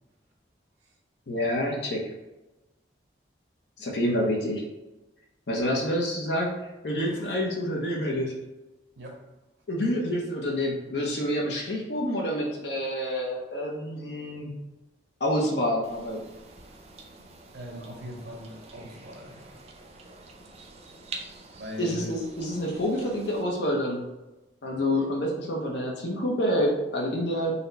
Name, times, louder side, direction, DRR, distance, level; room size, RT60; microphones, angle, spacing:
voice 1, 1.3-2.0 3.8-4.6 5.5-6.5 6.8-8.4 9.7-14.5 15.2-16.3 21.8-24.0 24.6-27.5, equal, 70° left, -1 dB, 0.7 m, -28 dB
voice 2, 7.1-7.4 9.0-9.2 17.5-19.5 21.6-22.1, equal, 75° right, 1 dB, 0.9 m, -40 dB
sound 1, 15.8-23.4, right 3 dB, 35° right, 0.4 m, -46 dB
4.1 x 2.1 x 4.0 m, 1.0 s
head